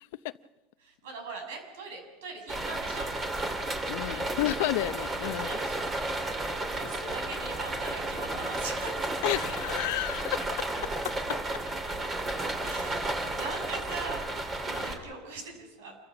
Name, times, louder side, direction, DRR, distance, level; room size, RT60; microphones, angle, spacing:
voice 1, 0.8-3.1 4.1-4.3 5.3-5.9 6.3-9.1 12.6-16.0, right 3 dB, 90° right, 6.9 m, -41 dB
sound 1, 2.5-15.0, right 2 dB, 20° right, 3.0 m, -33 dB
voice 2, 3.9-5.5 9.2-10.4 14.7-14.9, left 16 dB, 70° left, 0.7 m, -30 dB
28.5 x 15.0 x 6.1 m
supercardioid pair, 145°, 0 cm